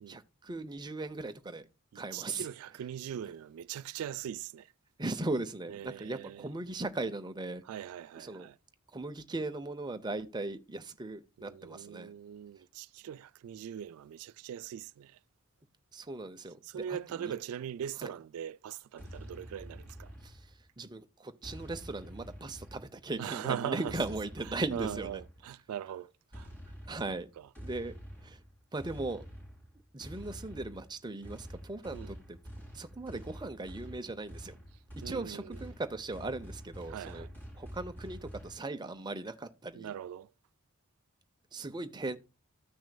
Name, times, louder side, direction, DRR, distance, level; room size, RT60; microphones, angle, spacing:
voice 1, 0.1-1.7 1.9-2.5 5.0-7.6 8.2-8.5 8.9-12.1 15.9-17.3 18.0-18.1 20.2-20.4 20.8-25.2 26.9-27.3 27.6-27.9 28.2-28.4 28.7-29.2 29.9-32.4 32.7-34.5 35.0-37.3 37.5-39.9 41.5-42.2, right 2 dB, 20° right, 0.6 m, -38 dB
voice 2, 1.9-4.7 5.7-6.5 7.6-8.6 11.4-15.2 16.6-20.1 23.2-24.0 24.5-26.5 27.1-27.5 31.9-32.1 35.0-35.7 36.9-37.3 39.8-40.3, right 9 dB, 85° right, 0.3 m, -41 dB
sound 1, 19.0-20.7 21.4-23.2 23.9-25.5 26.3-38.6, equal, 10° left, 2.6 m, -48 dB
14.5 x 6.2 x 2.2 m
head